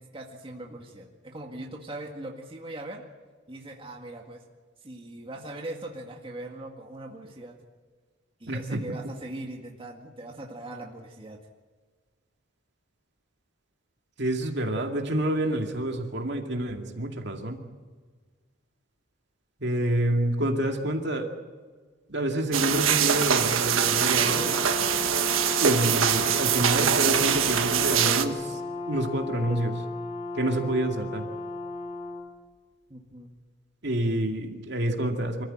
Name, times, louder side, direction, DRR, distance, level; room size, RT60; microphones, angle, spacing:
voice 1, 0.0-3.0 3.5-4.4 4.8-7.6 8.4-11.4 32.9-33.3, right 1 dB, 25° right, 1 dB, 1.9 m, -40 dB
voice 2, 8.5-8.8 14.2-17.6 19.6-21.3 22.1-24.5 25.6-28.6 28.9-29.8 30.3-31.3 33.8-35.5, right 1 dB, 60° right, 3 dB, 2.3 m, -28 dB
sound 1, 22.5-28.2, right 8 dB, 90° right, 1.5 m, -23 dB
Brass instrument, 23.6-32.3, left 2 dB, 35° left, 2.2 m, -35 dB
26.0 x 14.0 x 8.9 m, 1.5 s
head